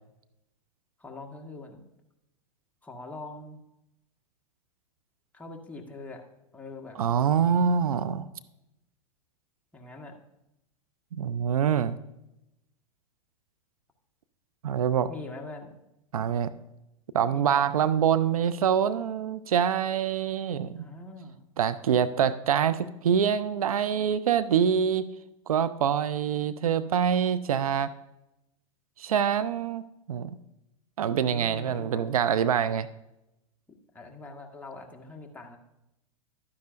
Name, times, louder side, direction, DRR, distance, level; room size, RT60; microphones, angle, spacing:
voice 1, 1.0-1.8 2.8-3.6 5.3-6.2 6.5-7.0 9.7-10.2 15.1-15.7 17.3-17.9 20.7-21.4 31.1-32.1 33.9-35.6, left 2 dB, 10° left, 1 dB, 1.3 m, -43 dB
voice 2, 7.0-8.3 11.2-12.0 14.6-15.1 16.1-16.5 17.1-20.9 21.6-25.1 25.5-27.9 29.0-29.8 30.1-30.3 31.0-32.9, right 8 dB, 80° right, 15 dB, 0.5 m, -25 dB
11.5 x 9.6 x 2.5 m, 0.89 s
hypercardioid pair, 105°, 18 cm